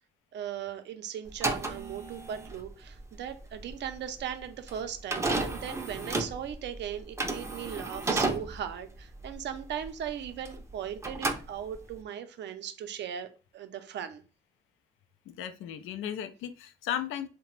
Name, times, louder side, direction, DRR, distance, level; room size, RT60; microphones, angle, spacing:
voice 1, 0.3-14.2, right 9 dB, 65° right, 0.5 m, -38 dB
sound 1, 1.3-10.7 11.0-12.0, right 2 dB, 15° right, 0.5 m, -33 dB
voice 2, 15.3-17.3, left 10 dB, 85° left, 0.4 m, -35 dB
2.8 x 2.1 x 3.1 m
cardioid pair, 90°, 20 cm